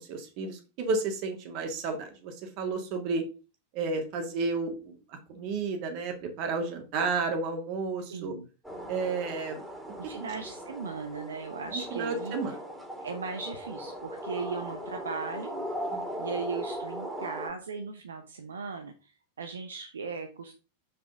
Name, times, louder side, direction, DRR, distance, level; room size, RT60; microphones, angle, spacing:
voice 1, 0.1-3.2 3.7-4.9 5.3-8.3 8.9-9.6 11.9-12.5 15.9-16.0, right 4 dB, 45° right, 4 dB, 1.9 m, -31 dB
voice 2, 8.1-8.5 10.0-12.4 13.0-15.5 16.2-19.1 19.4-20.5, right 5 dB, 70° right, 6 dB, 0.9 m, -37 dB
sound 1, 8.6-17.5, equal, 5° right, 2.4 m, -38 dB
6.3 x 4.8 x 4.9 m, 0.32 s
figure-of-eight pair, 90°, 0 cm